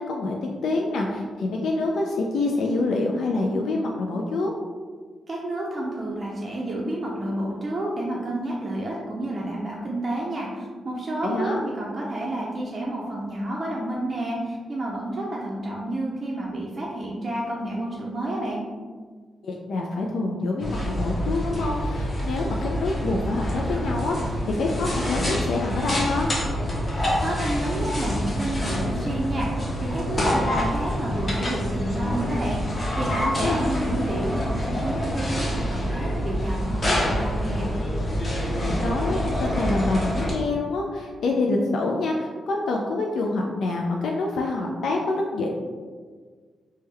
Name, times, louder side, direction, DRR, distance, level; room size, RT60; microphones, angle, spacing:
voice 1, 0.0-4.5 11.2-11.6 19.4-24.2 24.5-26.3 33.4-33.6 38.6-45.5, left 2 dB, 80° left, 0 dB, 0.3 m, -26 dB
voice 2, 5.3-18.6 27.2-37.7, right 1 dB, 35° right, -4 dB, 0.4 m, -30 dB
sound 1, 20.6-40.3, equal, 30° left, 0.8 m, -26 dB
3.3 x 2.2 x 3.2 m, 1.5 s
wide cardioid pair, 125°, 0 cm